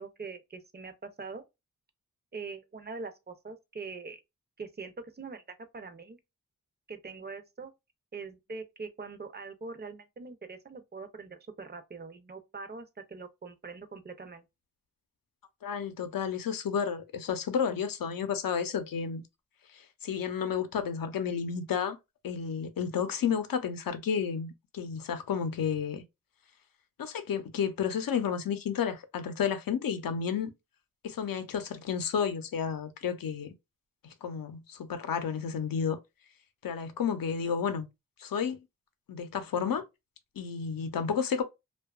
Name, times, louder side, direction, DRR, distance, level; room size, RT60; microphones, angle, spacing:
voice 1, 0.0-1.4 2.3-4.2 4.6-6.2 6.9-7.7 8.1-14.4, right 4 dB, 30° right, 0.5 m, -43 dB
voice 2, 15.6-19.2 19.7-22.0 22.2-26.0 27.0-30.5 31.0-33.5 34.0-36.0 36.6-37.9 38.2-38.6 39.1-39.8 40.4-41.4, left 7 dB, 80° left, 0.6 m, -31 dB
2.7 x 2.2 x 2.2 m
wide cardioid pair, 130°, 33 cm